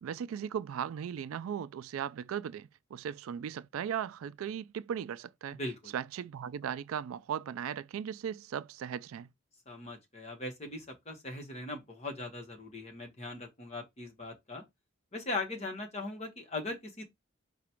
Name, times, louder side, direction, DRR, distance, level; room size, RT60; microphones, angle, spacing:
voice 1, 0.0-5.6 5.9-9.3, right 8 dB, 90° right, 0.3 m, -37 dB
voice 2, 5.6-5.9 9.7-14.6 15.1-17.0, left 2 dB, 35° left, 1.2 m, -39 dB
4.9 x 2.3 x 4.3 m
head